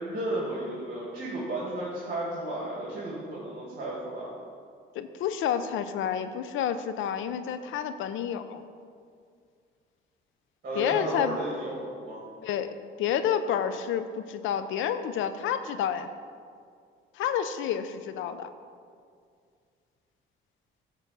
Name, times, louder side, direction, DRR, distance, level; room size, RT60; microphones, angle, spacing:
voice 1, 0.0-4.3 10.6-12.2, right 1 dB, 50° right, -6 dB, 2.2 m, -33 dB
voice 2, 5.0-8.6 10.7-11.4 12.4-12.7 13.0-16.1 17.1-18.5, left 9 dB, 80° left, 11 dB, 0.6 m, -29 dB
10.0 x 3.7 x 6.7 m, 2.2 s
cardioid pair, 90°, 20 cm